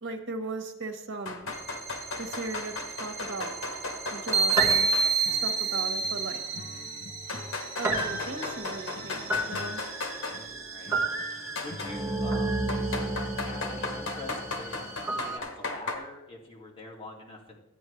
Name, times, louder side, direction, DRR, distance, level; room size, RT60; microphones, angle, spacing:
voice 1, 0.0-1.5 2.2-3.5 4.1-4.9 5.3-6.4 7.8-9.8, right 3 dB, 60° right, 4 dB, 1.4 m, -37 dB
sound 1, 1.3-5.1 5.4-5.5 6.4-6.5 7.3-10.4 11.6-11.9 12.7-16.0, left 3 dB, 80° left, 1.4 m, -36 dB
sound 2, 1.5-15.4, right 3 dB, 15° right, 1.2 m, -31 dB
Acoustic guitar / Strum, 5.2-12.4, left 1 dB, 45° left, 1.0 m, -47 dB
voice 2, 10.7-12.6 13.4-17.6, left 1 dB, 25° left, -3 dB, 2.3 m, -45 dB
13.5 x 9.0 x 3.2 m, 1.0 s
head